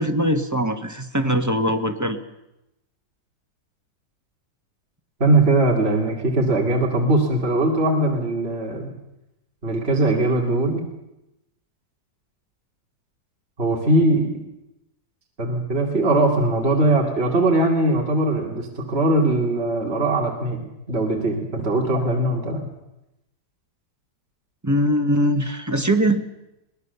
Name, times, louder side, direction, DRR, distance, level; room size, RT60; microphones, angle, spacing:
voice 1, 0.0-2.2 24.6-26.2, equal, 10° right, 6 dB, 1.1 m, -21 dB
voice 2, 5.2-8.9 9.6-10.9 13.6-14.4 15.4-22.7, right 2 dB, 35° right, 0 dB, 2.9 m, -20 dB
23.0 x 18.5 x 6.9 m, 0.90 s
omnidirectional pair, 2.0 m